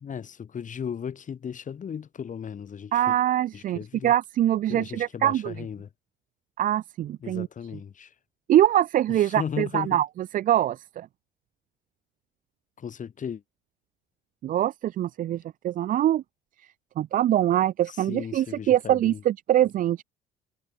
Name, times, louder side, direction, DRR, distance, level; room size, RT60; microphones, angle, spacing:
voice 1, 0.0-3.2 3.5-4.1 4.7-5.9 7.2-8.1 9.1-10.0 12.8-13.4 17.9-19.2, left 7 dB, 40° left, 2.5 m, -36 dB
voice 2, 2.9-5.5 6.6-7.5 8.5-10.1 10.3-11.1 14.4-16.2 17.0-20.0, right 12 dB, 40° right, 0.5 m, -23 dB
hypercardioid pair, 60°, 21 cm